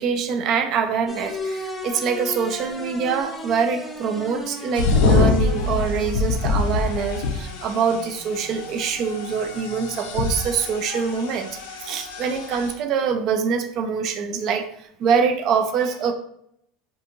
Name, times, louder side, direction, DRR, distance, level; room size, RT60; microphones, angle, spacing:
voice 1, 0.0-11.5 11.8-16.1, right 6 dB, 55° right, 7 dB, 0.4 m, -24 dB
sound 1, 1.1-10.2, left 1 dB, 10° left, 0.5 m, -37 dB
sound 2, 4.8-12.7, left 4 dB, 80° left, 0.4 m, -25 dB
2.5 x 2.5 x 2.8 m, 0.71 s
hypercardioid pair, 90°, 0 cm